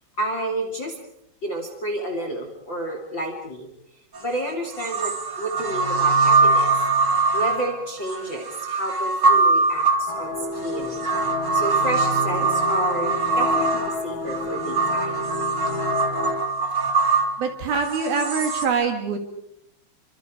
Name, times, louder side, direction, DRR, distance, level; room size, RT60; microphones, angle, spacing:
voice 1, 0.2-0.9 1.4-3.7 4.2-6.7 7.3-10.3 10.6-11.0 11.5-15.2, right 1 dB, 30° left, 3 dB, 2.7 m, -30 dB
sound 1, 4.1-4.2 4.8-18.7, right 3 dB, 35° right, 1.8 m, -22 dB
sound 2, 10.1-16.4, left 4 dB, 80° left, 1.1 m, -31 dB
voice 2, 17.4-19.2, right 5 dB, 55° right, 5 dB, 3.6 m, -24 dB
29.5 x 25.0 x 5.1 m, 0.76 s
omnidirectional pair, 5.6 m